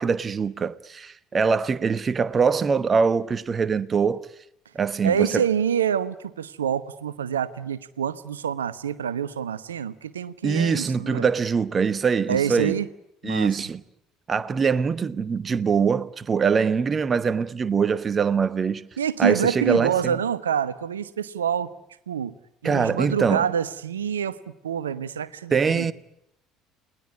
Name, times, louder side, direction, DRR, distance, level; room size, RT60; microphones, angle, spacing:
voice 1, 0.0-4.3 4.7-5.4 10.4-12.8 13.2-13.8 14.3-18.9 19.2-20.2 22.6-23.5 25.5-25.9, right 5 dB, 30° right, 1.1 m, -23 dB
voice 2, 5.0-11.3 12.3-12.9 13.2-13.5 19.0-21.7 22.1-22.4 22.6-25.9, right 8 dB, 75° right, 1.0 m, -26 dB
29.5 x 19.5 x 9.7 m
figure-of-eight pair, 60°, 0 cm